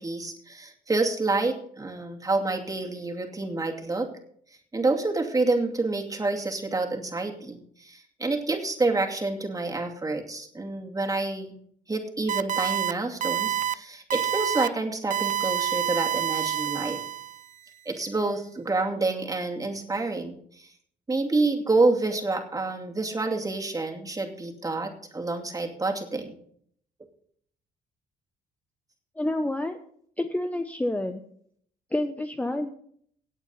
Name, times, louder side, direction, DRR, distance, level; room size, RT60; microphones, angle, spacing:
voice 1, 0.0-4.1 4.7-11.6 11.9-17.0 17.9-20.7 21.1-26.4, right 3 dB, 20° right, 2 dB, 2.6 m, -28 dB
sound 1, 12.3-12.9 13.2-13.7 14.1-14.7 15.1-17.4, right 11 dB, 45° right, 0.6 m, -27 dB
voice 2, 29.2-29.8 30.2-31.2 31.9-32.7, left 1 dB, 10° left, 7 dB, 0.9 m, -28 dB
18.0 x 8.2 x 4.2 m, 0.63 s
cardioid pair, 90°, 18 cm